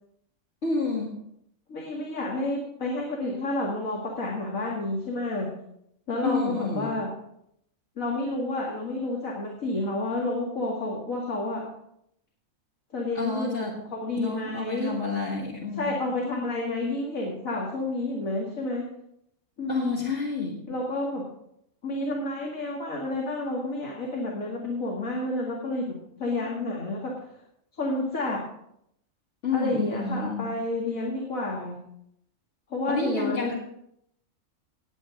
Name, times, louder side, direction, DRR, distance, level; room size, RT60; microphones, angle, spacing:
voice 1, 0.6-1.2 6.2-6.9 13.2-13.8 14.1-16.0 19.7-20.6 26.4-26.5 29.4-30.5 32.9-33.5, left 4 dB, 60° left, -3 dB, 2.1 m, -29 dB
voice 2, 1.7-5.5 6.1-7.1 8.0-11.6 12.9-13.6 13.9-14.9 15.8-18.9 19.6-20.1 20.7-21.2 21.8-27.1 27.8-28.4 29.5-31.8 32.7-33.5, left 2 dB, 75° left, -2 dB, 2.5 m, -30 dB
18.5 x 8.3 x 3.8 m, 0.75 s
omnidirectional pair, 1.4 m